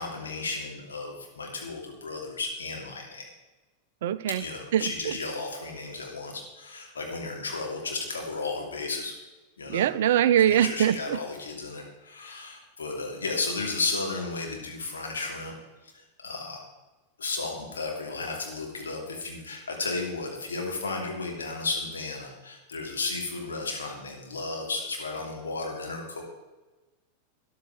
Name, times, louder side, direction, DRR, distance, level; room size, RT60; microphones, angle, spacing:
voice 1, 0.0-3.3 4.4-9.1 9.6-9.8 10.5-15.6 15.8-16.6 17.2-26.2, left 3 dB, 70° left, 0 dB, 2.8 m, -34 dB
voice 2, 4.0-4.4 4.7-5.1 9.7-11.2, right 10 dB, 55° right, 16 dB, 0.5 m, -23 dB
13.5 x 10.5 x 4.8 m, 1.2 s
figure-of-eight pair, 90°, 0 cm